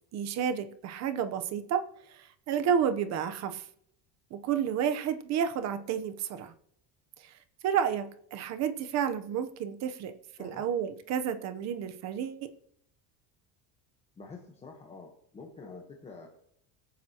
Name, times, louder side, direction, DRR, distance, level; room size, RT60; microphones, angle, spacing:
voice 1, 0.1-1.8 2.1-3.6 4.3-6.5 7.6-10.1 10.4-12.5, right 8 dB, 40° right, 9 dB, 0.9 m, -31 dB
voice 2, 14.2-16.3, left 4 dB, 15° left, 0 dB, 1.1 m, -47 dB
24.0 x 9.4 x 2.9 m, 0.72 s
cardioid pair, 180°, 42 cm